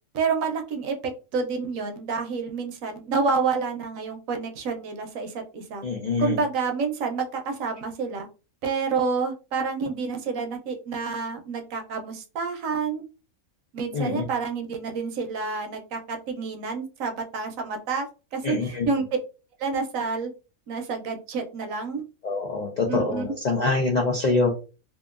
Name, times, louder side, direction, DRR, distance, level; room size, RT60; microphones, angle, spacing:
voice 1, 0.1-5.8 6.2-8.3 8.6-13.0 13.7-18.1 18.3-19.1 19.6-20.3 20.7-22.0 22.9-23.3, right 5 dB, 75° right, 4 dB, 1.0 m, -29 dB
voice 2, 5.8-6.4 13.9-14.2 18.4-18.9 22.2-24.5, left 3 dB, 75° left, 1 dB, 0.4 m, -25 dB
2.8 x 2.3 x 2.4 m, 0.33 s
omnidirectional pair, 1.5 m